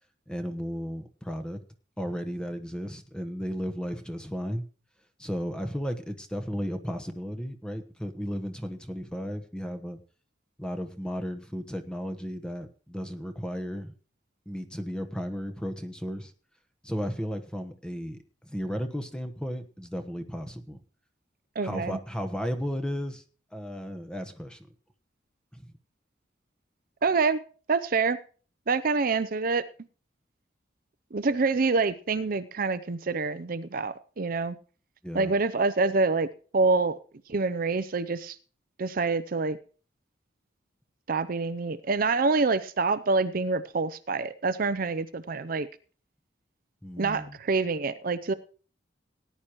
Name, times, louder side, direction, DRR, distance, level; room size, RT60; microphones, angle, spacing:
voice 1, 0.3-1.6 2.0-4.6 5.2-10.0 10.6-13.9 14.5-16.3 16.8-18.2 18.5-20.8 21.6-23.2 23.5-24.7 25.5-25.7 35.0-35.3 46.8-47.4, equal, 5° left, 7 dB, 1.1 m, -34 dB
voice 2, 21.6-22.0 27.0-27.4 27.7-28.2 28.7-29.6 31.1-34.5 35.1-36.3 36.5-37.0 37.3-38.4 38.8-39.6 41.1-45.7 47.0-48.3, right 4 dB, 50° right, 13 dB, 0.6 m, -26 dB
18.0 x 10.0 x 3.0 m, 0.39 s
head